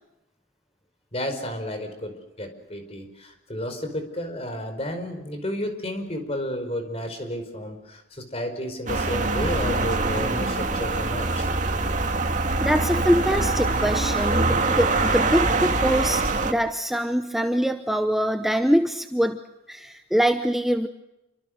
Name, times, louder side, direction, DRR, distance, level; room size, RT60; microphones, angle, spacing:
voice 1, 1.1-11.5, equal, 35° left, 7 dB, 4.9 m, -32 dB
sound 1, 8.9-16.5, right 3 dB, 45° right, 2.2 m, -24 dB
voice 2, 12.6-19.4 19.7-20.9, equal, ahead, 7 dB, 0.8 m, -24 dB
28.0 x 25.0 x 6.5 m, 1.0 s
head